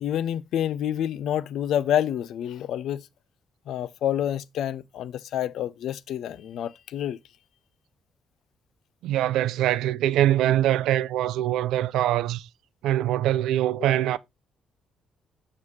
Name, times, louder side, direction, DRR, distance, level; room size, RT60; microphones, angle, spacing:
voice 1, 0.0-3.1 3.7-7.2, left 10 dB, 80° left, 0.4 m, -28 dB
voice 2, 9.0-12.5 12.8-14.2, right 13 dB, 90° right, 0.3 m, -23 dB
6.3 x 5.6 x 3.1 m
cardioid pair, 90°, 0 cm